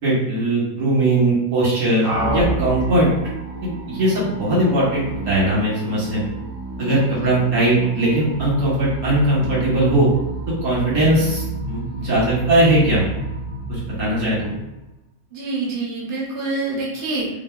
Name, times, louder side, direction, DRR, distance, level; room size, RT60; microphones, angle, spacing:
voice 1, 0.0-3.1 3.6-6.2 6.8-10.1 10.6-13.1 13.7-14.6, right 1 dB, 80° right, -9 dB, 2.1 m, -19 dB
sound 1, 2.0-14.9, right 2 dB, 15° right, 0.9 m, -30 dB
voice 2, 15.3-17.3, right 3 dB, 45° right, -4 dB, 0.7 m, -26 dB
4.6 x 2.0 x 2.3 m, 0.95 s
omnidirectional pair, 1.7 m